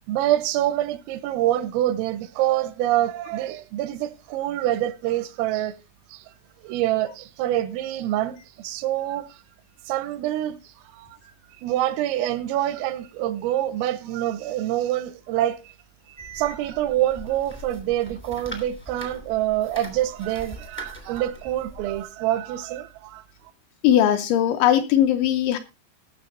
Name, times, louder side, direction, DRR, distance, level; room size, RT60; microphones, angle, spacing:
voice 1, 0.1-5.7 6.1-6.3 6.6-9.4 9.9-11.3 11.6-15.8 16.1-23.5, right 13 dB, 85° right, 3.4 m, -26 dB
sound 1, 16.2-22.0, right 1 dB, 10° left, 0.5 m, -42 dB
voice 2, 23.8-25.6, left 11 dB, 80° left, 2.8 m, -19 dB
18.0 x 6.6 x 3.9 m
omnidirectional pair, 5.9 m